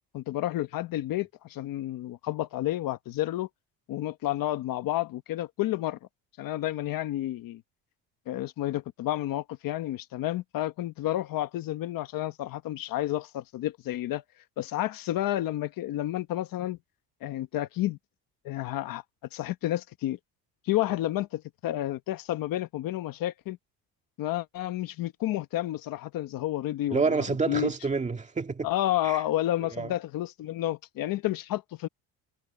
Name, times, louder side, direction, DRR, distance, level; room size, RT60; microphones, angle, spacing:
voice 1, 0.1-3.5 3.9-6.0 6.4-7.6 8.3-14.2 14.6-16.8 17.2-18.0 18.4-19.0 19.3-20.2 20.6-23.6 24.2-27.0 27.5-27.7 28.6-31.9, left 14 dB, 60° left, 1.2 m, -30 dB
voice 2, 26.9-28.7 29.0-29.2 29.6-29.9, right 4 dB, 20° right, 2.0 m, -28 dB
cardioid pair, 160°, 39 cm